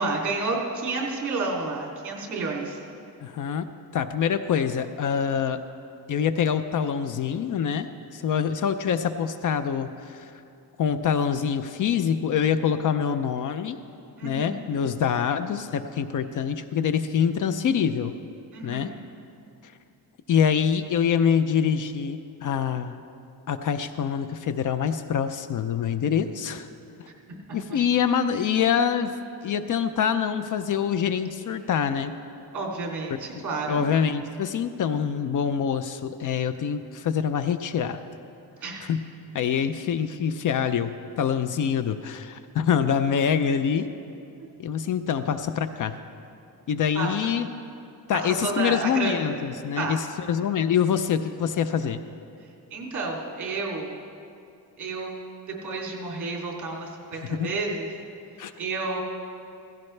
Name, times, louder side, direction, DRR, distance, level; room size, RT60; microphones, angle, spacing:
voice 1, 0.0-2.8 14.2-14.8 18.5-18.9 27.3-27.4 32.5-33.9 38.6-38.9 44.4-44.5 46.9-47.1 48.1-49.1 49.7-50.0 52.7-53.9 54.8-57.9 58.6-59.0, right 3 dB, 50° right, -2 dB, 2.8 m, -30 dB
voice 2, 3.2-5.6 6.1-10.3 10.8-13.8 14.2-18.2 18.6-18.9 19.6-19.7 20.3-23.0 23.5-26.7 27.0-27.1 27.5-29.1 29.4-32.1 33.7-38.0 38.9-39.0 39.3-43.9 44.6-46.0 46.7-47.5 48.1-52.0 57.4-57.5 58.4-58.5, left 7 dB, 50° left, 11 dB, 0.5 m, -25 dB
16.5 x 16.0 x 3.3 m, 2.6 s
cardioid pair, 150°, 39 cm